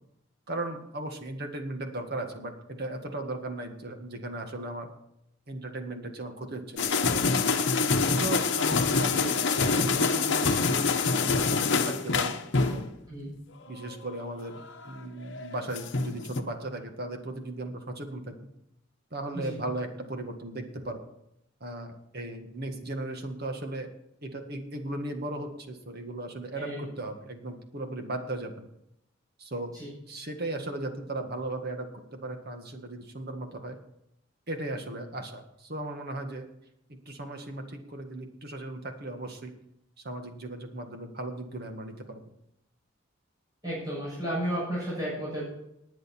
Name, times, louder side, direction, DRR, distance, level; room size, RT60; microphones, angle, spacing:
voice 1, 0.5-4.9 5.5-7.0 8.1-9.4 9.7-10.9 11.3-12.9 13.7-18.5 19.1-21.0 21.6-23.9 24.2-28.7 29.4-29.7 30.1-33.8 34.5-36.5 36.9-39.5 40.0-42.3, right 2 dB, 50° right, 5 dB, 1.8 m, -37 dB
sound 1, 6.8-12.9 13.7-14.2 15.2-16.4, left 4 dB, 55° left, 1.1 m, -26 dB
voice 2, 43.6-45.4, equal, 20° right, -8 dB, 7.0 m, -32 dB
19.5 x 9.3 x 4.5 m, 0.80 s
head